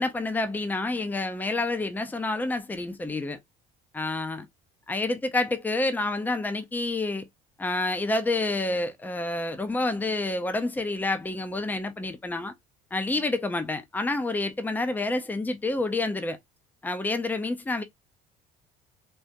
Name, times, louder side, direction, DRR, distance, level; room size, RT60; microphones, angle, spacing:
voice 1, 0.0-3.4 3.9-4.5 4.9-7.3 7.6-12.5 12.9-16.4 16.8-17.8, left 2 dB, 10° left, 0.6 m, -28 dB
3.7 x 2.1 x 2.6 m
supercardioid pair, 85°, 19 cm